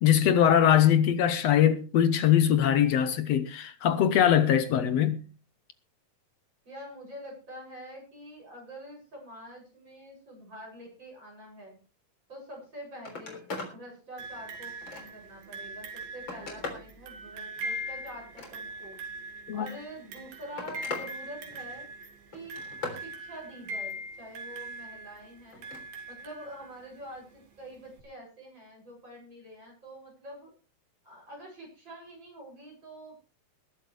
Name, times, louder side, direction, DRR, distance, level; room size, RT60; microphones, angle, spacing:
voice 1, 0.0-5.2 19.5-19.7, left 10 dB, 65° left, 1.7 m, -22 dB
voice 2, 6.6-11.8 12.3-19.0 19.5-21.8 22.3-25.7 26.1-30.5 31.0-33.1, equal, 30° right, 8.3 m, -46 dB
Telephone, 12.5-12.7 13.0-13.8 14.2-15.3 15.9-16.9 18.2-19.0 20.0-21.1 21.4-21.9 22.3-23.0 25.5-25.9 27.3-27.4, left 3 dB, 35° left, 4.1 m, -40 dB
sound 1, 14.2-27.0 28.0-28.1, right 1 dB, 85° right, 4.2 m, -41 dB
21.0 x 11.5 x 3.4 m
omnidirectional pair, 4.0 m